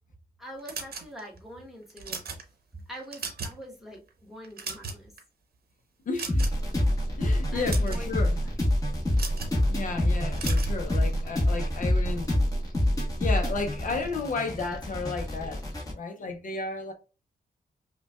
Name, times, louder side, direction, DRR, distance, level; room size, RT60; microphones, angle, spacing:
voice 1, 0.4-2.4 2.7-5.1 7.5-8.8, equal, ahead, 1.0 m, -44 dB
sound 1, 0.7-1.4 1.9-2.4 2.9-3.6 3.9-4.1 4.4-5.2 6.2-6.7 7.5-8.0 9.1-9.6 10.4-10.8, right 5 dB, 70° right, 0.8 m, -36 dB
voice 2, 6.1-6.5 7.2-8.4 9.7-12.3 13.2-15.7 15.9-16.9, left 3 dB, 55° left, 0.6 m, -33 dB
sound 2, 6.3-15.9, left 1 dB, 20° left, 1.1 m, -26 dB
5.3 x 2.2 x 2.3 m
wide cardioid pair, 160°, 16 cm